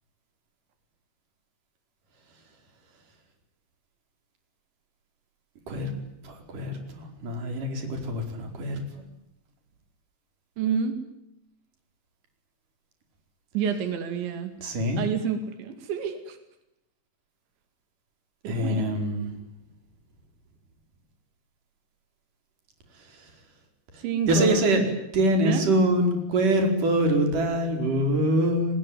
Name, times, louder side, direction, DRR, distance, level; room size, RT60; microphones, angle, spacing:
voice 1, 6.2-8.8 14.6-15.0 18.5-19.3 23.0-23.3 23.9-24.8 25.1-28.8, right 1 dB, 50° right, 4 dB, 6.1 m, -25 dB
voice 2, 10.6-11.0 13.5-14.5 15.0-16.4 18.4-18.9 24.0-24.8 25.4-25.7, right 7 dB, 90° right, 8 dB, 4.7 m, -29 dB
29.5 x 20.5 x 9.4 m, 0.86 s
omnidirectional pair, 5.1 m